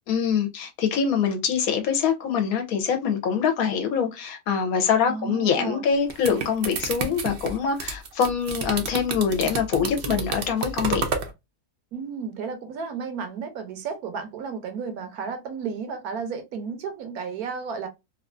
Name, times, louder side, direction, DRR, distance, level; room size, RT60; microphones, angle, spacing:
voice 1, 0.1-11.1, left 7 dB, 70° left, 1.0 m, -24 dB
voice 2, 5.1-5.8 11.9-17.9, right 5 dB, 75° right, 1.2 m, -33 dB
sound 1, 5.9-11.3, right 4 dB, 60° right, 0.7 m, -30 dB
3.1 x 2.3 x 2.4 m
omnidirectional pair, 1.7 m